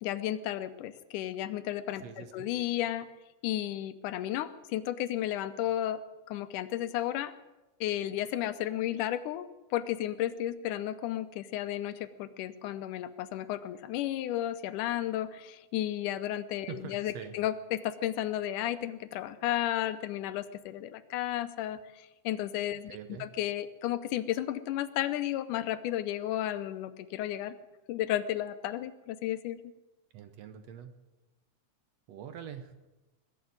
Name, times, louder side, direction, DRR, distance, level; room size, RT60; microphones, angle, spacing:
voice 1, 0.0-3.1 3.4-6.0 6.3-7.3 7.8-27.6 27.9-29.6, left 12 dB, 85° left, 12 dB, 2.3 m, -33 dB
voice 2, 2.0-2.5 16.7-17.4 22.9-23.3 30.1-30.9 32.1-32.9, right 9 dB, 70° right, 9 dB, 1.8 m, -44 dB
21.5 x 7.1 x 9.4 m, 1.1 s
omnidirectional pair, 3.6 m